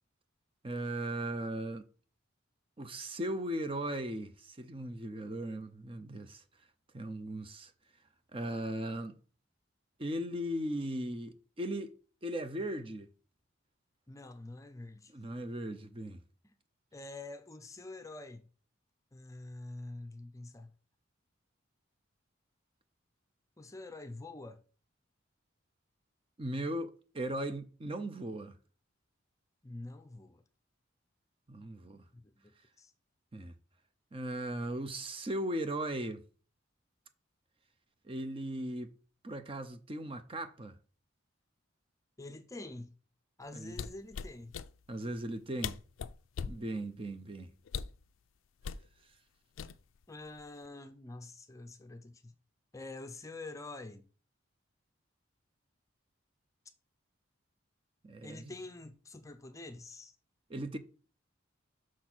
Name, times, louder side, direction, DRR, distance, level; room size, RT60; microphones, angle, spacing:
voice 1, 0.6-1.8 2.8-6.4 6.9-7.7 8.3-9.1 10.0-11.9 12.2-13.1 15.1-16.2 26.4-28.5 31.5-32.0 33.3-33.5 34.1-36.2 38.0-38.9 39.2-40.8 43.5-43.8 44.9-45.8 46.5-47.5 58.0-58.5 60.5-60.8, right 1 dB, 25° right, 0.6 m, -37 dB
voice 2, 14.1-15.1 16.4-16.5 16.9-18.5 19.1-20.7 23.6-24.6 29.6-30.4 32.1-32.9 42.2-42.9 43.4-44.5 50.1-52.3 52.7-54.1 58.2-60.2, left 2 dB, 15° left, 0.6 m, -46 dB
sound 1, 43.7-44.7 45.4-45.5 45.6-46.6 47.7-48.0 48.6-48.9 49.6-50.0 50.4-50.7, left 6 dB, 80° left, 0.4 m, -39 dB
6.1 x 4.2 x 6.0 m
head